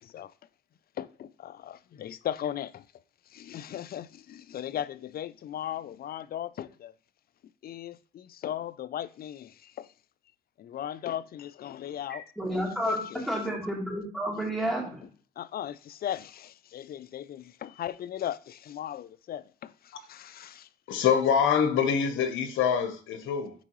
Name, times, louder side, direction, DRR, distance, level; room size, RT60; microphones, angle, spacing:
voice 1, 0.0-0.3 1.0-2.8 3.3-6.9 7.6-9.9 10.6-12.2 12.5-13.3 15.4-20.7, left 11 dB, 50° left, 0.4 m, -37 dB
voice 2, 12.4-13.0 13.3-15.0, right 1 dB, ahead, 3.0 m, -30 dB
voice 3, 20.9-23.5, left 7 dB, 80° left, 1.0 m, -25 dB
10.5 x 4.6 x 3.0 m
cardioid pair, 90°, 20 cm